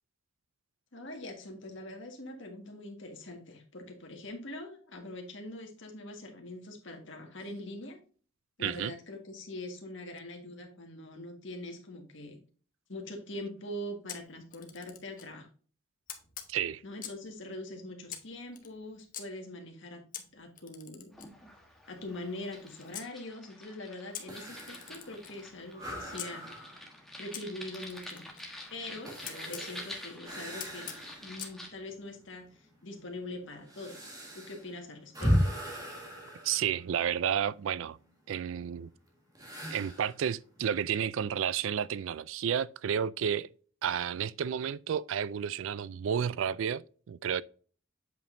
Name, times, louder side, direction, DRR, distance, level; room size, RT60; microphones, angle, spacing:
voice 1, 0.9-8.0 8.6-12.4 12.9-15.5 16.8-21.1 21.9-26.5 27.2-28.2 28.7-30.9 31.2-35.3, left 1 dB, 60° left, 1.7 m, -43 dB
voice 2, 8.6-8.9 16.5-16.8 36.4-38.0 38.3-38.9 39.7-43.5 43.8-47.4, right 8 dB, 65° right, 0.3 m, -31 dB
Camera, 14.1-15.3 16.1-17.3 18.1-19.2 20.1-23.1 24.1-26.3 27.3-29.7 30.6-31.6, left 9 dB, 40° left, 0.9 m, -46 dB
sound 1, 21.1-31.7, left 1 dB, ahead, 1.2 m, -48 dB
sound 2, 24.3-31.5 31.9-32.0 32.7-37.4 39.3-40.2, equal, 15° right, 1.6 m, -36 dB
8.0 x 5.2 x 2.6 m
head